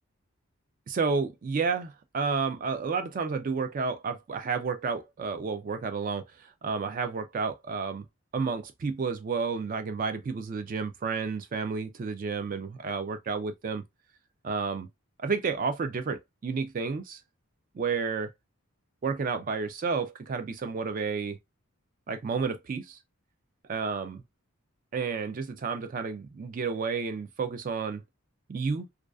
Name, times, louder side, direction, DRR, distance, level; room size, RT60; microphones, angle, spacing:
voice 1, 0.9-8.1 8.3-13.8 14.4-14.9 15.2-17.2 17.7-18.3 19.0-21.4 22.1-23.0 23.7-24.2 24.9-28.0 28.5-28.9, right 5 dB, 35° right, 0.3 m, -31 dB
2.4 x 2.3 x 2.3 m
head